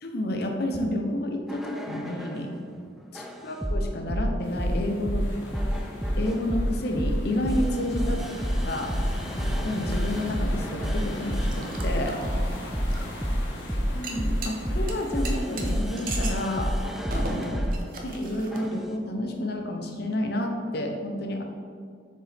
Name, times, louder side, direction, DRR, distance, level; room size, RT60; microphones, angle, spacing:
voice 1, 0.0-2.5 3.1-5.3 6.2-8.2 8.5-8.9 9.6-12.2 13.9-16.7 17.1-17.6 18.0-21.4, left 1 dB, 55° left, 3 dB, 0.7 m, -30 dB
sound 1, 1.5-2.5 3.1-17.8 18.5-18.9, equal, ahead, 0.3 m, -29 dB
voice 2, 2.6-3.1 7.5-7.7 12.1-13.3, left 1 dB, 30° left, -5 dB, 1.6 m, -46 dB
sound 2, 4.4-16.9, left 1 dB, 90° left, 1.2 m, -40 dB
sound 3, 9.2-19.0, right 2 dB, 45° right, 0.7 m, -41 dB
7.1 x 4.8 x 3.5 m, 2.1 s
head